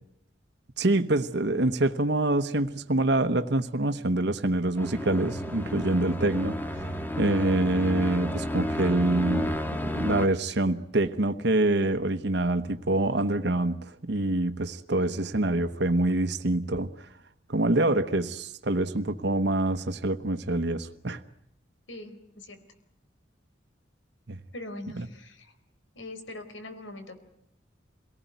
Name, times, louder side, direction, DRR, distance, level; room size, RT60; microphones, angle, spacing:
voice 1, 0.8-9.6 9.8-17.1 17.5-21.2 24.3-24.4 25.0-25.1, right 2 dB, 60° right, 1.1 m, -26 dB
sound 1, 4.8-10.3, left 1 dB, 10° left, 1.4 m, -32 dB
voice 2, 21.9-22.6 24.5-25.6 25.9-27.2, left 1 dB, 85° left, 4.2 m, -42 dB
27.5 x 18.5 x 9.3 m
head